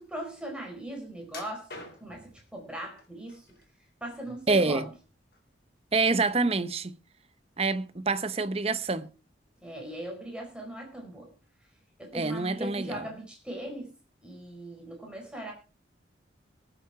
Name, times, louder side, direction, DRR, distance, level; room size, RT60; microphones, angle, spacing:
voice 1, 0.0-3.5 4.0-4.9 9.6-11.3 12.0-13.9 14.2-15.5, right 1 dB, 5° right, 4.5 m, -39 dB
sound 1, 1.3-2.3 3.0-3.7 4.1-5.0 5.3-5.5 6.0-6.1, left 2 dB, 55° left, 4.1 m, -46 dB
voice 2, 4.5-4.9 5.9-7.0 7.6-9.1 12.1-13.0, right 3 dB, 35° right, 0.9 m, -26 dB
21.5 x 7.6 x 4.8 m
head